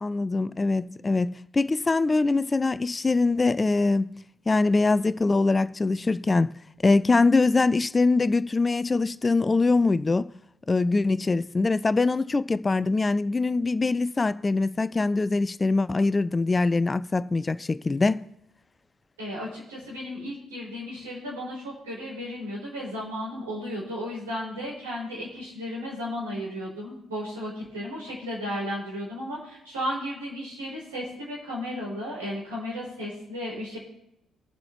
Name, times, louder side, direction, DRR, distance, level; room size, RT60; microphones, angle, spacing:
voice 1, 0.0-4.1 4.5-6.5 6.8-10.3 10.7-18.2, left 3 dB, 25° left, 0.4 m, -23 dB
voice 2, 19.2-33.8, equal, 80° right, 5.0 m, -34 dB
22.5 x 7.6 x 3.0 m
figure-of-eight pair, 40°, 0 cm